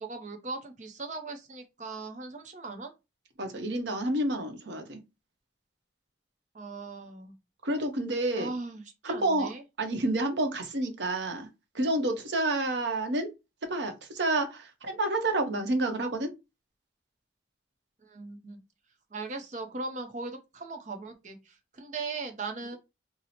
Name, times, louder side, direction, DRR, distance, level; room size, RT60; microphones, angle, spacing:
voice 1, 0.0-2.9 6.5-7.3 8.4-9.6 18.0-18.6 19.1-22.8, right 3 dB, 40° right, 0.6 m, -39 dB
voice 2, 3.4-5.0 7.6-8.5 9.0-9.5 9.8-11.5 11.7-13.3 13.7-16.3, right 2 dB, 70° right, 0.8 m, -29 dB
2.8 x 2.0 x 4.1 m
head